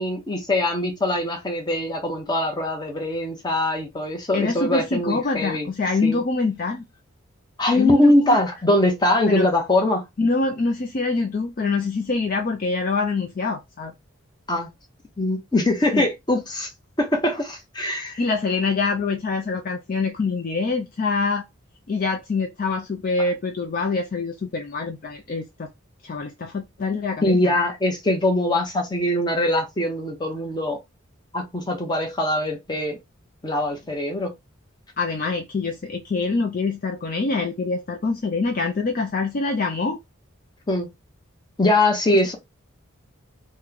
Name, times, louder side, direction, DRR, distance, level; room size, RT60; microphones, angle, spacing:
voice 1, 0.0-5.7 6.0-6.2 7.6-10.0 14.5-14.7 15.2-16.7 17.0-18.2 27.2-30.8 31.3-33.0 33.4-34.3 40.7-40.9 41.6-42.4, left 1 dB, 20° left, 0.8 m, -22 dB
voice 2, 4.3-6.8 7.7-8.4 9.3-9.5 10.2-13.9 15.9-16.1 18.2-21.5 21.9-25.7 26.0-27.4 35.0-40.0, left 3 dB, 40° left, 0.4 m, -25 dB
3.1 x 2.2 x 3.7 m
head